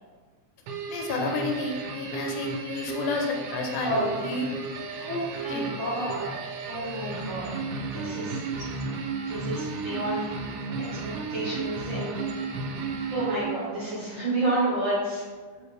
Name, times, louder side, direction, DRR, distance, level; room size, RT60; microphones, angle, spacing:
sound 1, 0.7-13.8, right 4 dB, 85° right, 2.1 m, -34 dB
voice 1, 0.9-4.5 5.5-5.7, left 3 dB, 85° left, 2 dB, 2.1 m, -30 dB
voice 2, 3.8-4.2 4.9-8.6 9.3-10.3 10.8-12.2 13.1-15.2, right 1 dB, 55° right, -10 dB, 1.5 m, -30 dB
4.4 x 3.1 x 3.1 m, 1.4 s
omnidirectional pair, 3.6 m